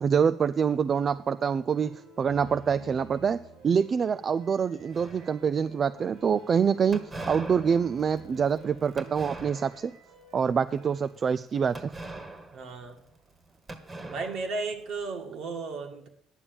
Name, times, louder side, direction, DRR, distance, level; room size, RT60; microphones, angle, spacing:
voice 1, 0.0-3.4 3.6-7.0 7.3-9.9 10.3-11.9, right 7 dB, 40° right, 13 dB, 0.3 m, -25 dB
sound 1, 1.7-11.1, right 2 dB, 85° right, 4.7 m, -51 dB
sound 2, 4.9-5.7 6.9-10.0 10.4-10.7 11.7-13.4 13.7-15.0, right 2 dB, 20° right, 1.5 m, -42 dB
voice 2, 12.5-13.0 14.0-16.1, right 4 dB, 60° right, 4 dB, 1.9 m, -34 dB
10.0 x 7.1 x 7.1 m, 0.69 s
cardioid pair, 110°, 0 cm